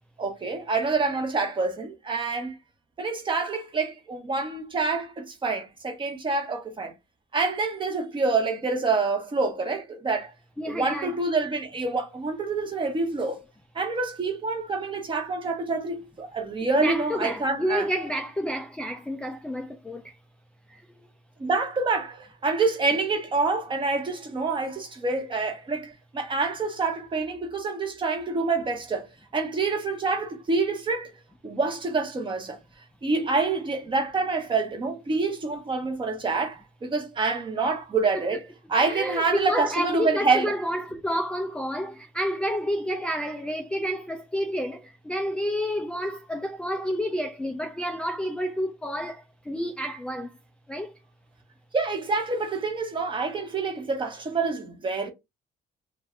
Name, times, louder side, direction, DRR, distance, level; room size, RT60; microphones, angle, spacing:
voice 1, 0.2-2.6 3.0-6.9 7.3-10.3 10.7-13.4 13.7-17.9 21.4-29.1 29.3-31.1 31.4-32.6 33.0-38.4 38.7-40.5 51.7-55.1, right 3 dB, 30° right, 1.1 m, -27 dB
voice 2, 10.6-11.1 16.8-20.2 20.7-21.1 38.1-38.2 38.8-50.3 50.7-50.9, equal, 5° left, 0.3 m, -30 dB
2.5 x 2.5 x 3.2 m
cardioid pair, 110°, 17 cm